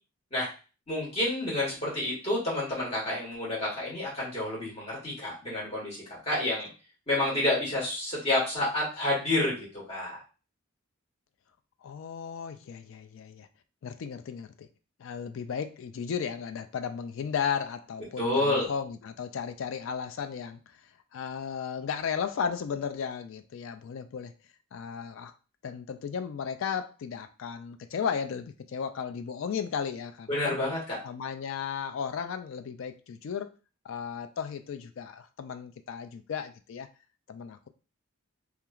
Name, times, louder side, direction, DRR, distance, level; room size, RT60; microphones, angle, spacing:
voice 1, 0.9-6.7 7.1-10.2 18.2-18.7 30.3-31.0, left 1 dB, 30° left, -6 dB, 1.4 m, -29 dB
voice 2, 11.8-13.5 13.8-14.7 15.0-20.8 21.1-24.3 24.7-25.3 25.6-30.6 31.0-33.5 33.8-36.9 37.3-37.7, left 7 dB, 70° left, 9 dB, 0.3 m, -35 dB
2.9 x 2.4 x 2.3 m, 0.34 s
head